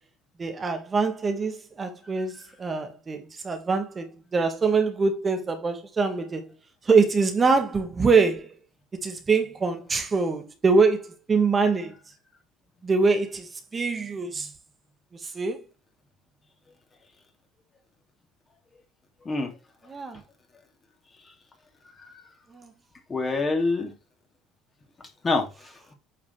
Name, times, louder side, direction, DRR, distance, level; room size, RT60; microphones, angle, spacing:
voice 1, 0.4-6.4 6.8-8.5 9.0-11.9 12.8-14.5 15.2-15.6 19.9-20.2 22.5-22.7, right 4 dB, 30° right, 1.6 m, -24 dB
voice 2, 19.2-19.6 22.0-22.2 23.1-23.9 25.2-25.9, left 3 dB, 25° left, 2.8 m, -27 dB
8.7 x 5.0 x 3.3 m
hypercardioid pair, 65°, 0 cm